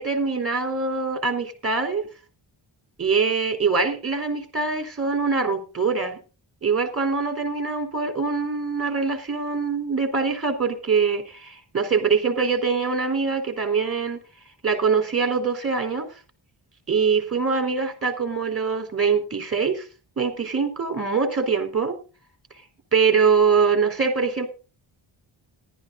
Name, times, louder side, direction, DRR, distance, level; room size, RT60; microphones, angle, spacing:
voice 1, 0.0-2.0 3.0-6.2 6.6-14.2 14.6-16.1 16.9-19.9 20.2-22.0 22.9-24.5, right 5 dB, 30° right, 6 dB, 3.8 m, -23 dB
14.5 x 12.0 x 3.9 m, 0.33 s
wide cardioid pair, 120°, 49 cm